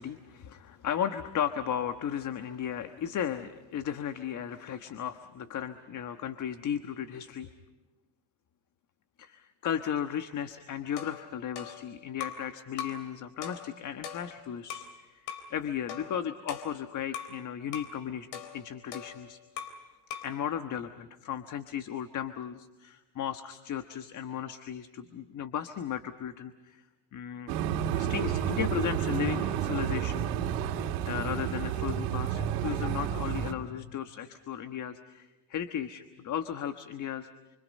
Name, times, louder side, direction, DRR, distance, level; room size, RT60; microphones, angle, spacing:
voice 1, 0.0-7.5 9.2-15.2 15.5-18.3 18.5-19.4 20.2-26.8 27.1-27.5 27.9-30.2 31.0-37.3, left 9 dB, 40° left, 9 dB, 1.4 m, -35 dB
sound 1, 11.0-12.5 12.8-13.1 13.4-14.9 15.3-15.5 15.9-17.4 17.7-18.0 18.3-19.8 20.1-20.4, left 8 dB, 75° left, 4.0 m, -41 dB
sound 2, 27.5-33.5, right 9 dB, 75° right, 2.7 m, -30 dB
29.0 x 25.5 x 5.4 m, 1.1 s
supercardioid pair, 110°, 48 cm